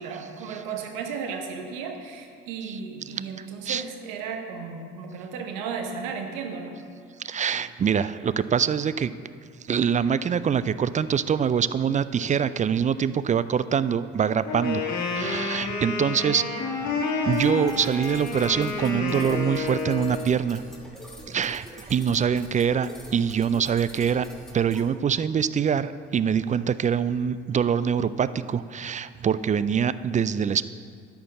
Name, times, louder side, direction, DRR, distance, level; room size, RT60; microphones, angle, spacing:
voice 1, 0.0-6.8, right 5 dB, 75° right, 4 dB, 1.1 m, -34 dB
voice 2, 3.4-3.8 7.2-9.1 9.7-16.5 16.9-20.6 21.3-24.3 24.5-30.7, right 7 dB, 25° right, 15 dB, 0.3 m, -24 dB
Wind instrument woodwind instrument, 14.4-20.3, left 4 dB, 65° left, 1.5 m, -29 dB
sound 1, 17.3-24.8, equal, ahead, 2.0 m, -46 dB
11.0 x 4.6 x 7.6 m, 2.1 s
hypercardioid pair, 55°, 31 cm